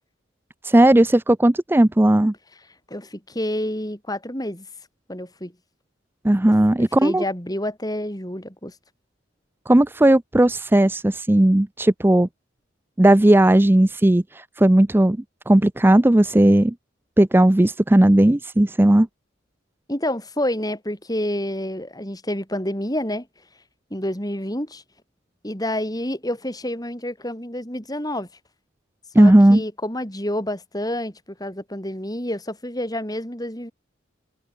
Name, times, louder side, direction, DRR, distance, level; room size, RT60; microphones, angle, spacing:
voice 1, 0.6-2.3 6.2-7.2 9.7-12.3 13.0-15.2 15.5-16.7 17.2-19.1 29.1-29.6, right 1 dB, 10° right, 0.4 m, -16 dB
voice 2, 2.9-4.7 5.1-5.5 6.8-8.7 19.9-23.3 23.9-24.8 25.4-28.3 29.2-33.7, left 1 dB, 20° left, 6.2 m, -28 dB
head